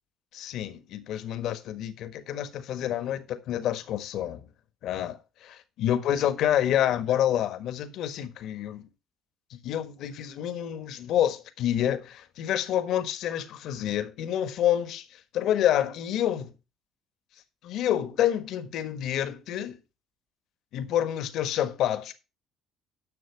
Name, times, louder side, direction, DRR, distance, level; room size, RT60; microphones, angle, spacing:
voice 1, 0.3-4.4 4.8-5.2 5.8-8.9 9.5-16.5 17.6-19.8 20.7-22.1, left 11 dB, 65° left, 1.4 m, -28 dB
11.0 x 6.5 x 4.6 m
hypercardioid pair, 60°, 0 cm